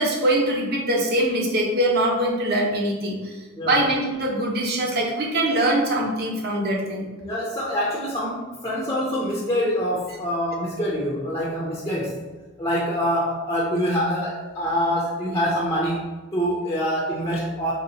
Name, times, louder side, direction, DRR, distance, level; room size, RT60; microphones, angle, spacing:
voice 1, 0.0-7.0, right 1 dB, 45° right, -1 dB, 0.7 m, -23 dB
voice 2, 7.2-12.2 12.6-17.7, equal, 15° left, -4 dB, 0.4 m, -25 dB
3.4 x 2.7 x 3.9 m, 1.2 s
head